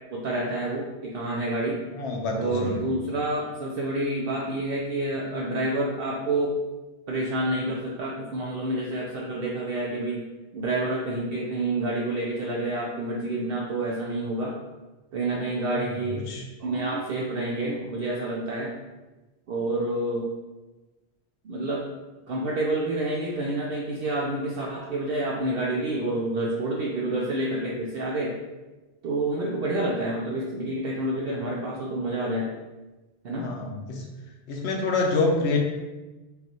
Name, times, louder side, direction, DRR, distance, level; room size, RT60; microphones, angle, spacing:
voice 1, 0.1-1.8 2.4-6.5 7.1-10.2 10.5-14.5 15.1-16.2 16.6-18.7 19.5-20.3 21.4-21.9 22.3-28.4 29.0-32.5 33.2-33.5, right 2 dB, 65° right, -3 dB, 0.7 m, -28 dB
voice 2, 2.0-2.8 15.7-16.4 33.4-34.0 34.5-35.6, left 3 dB, 75° left, 1 dB, 0.9 m, -27 dB
5.5 x 2.4 x 2.8 m, 1.1 s
omnidirectional pair, 1.2 m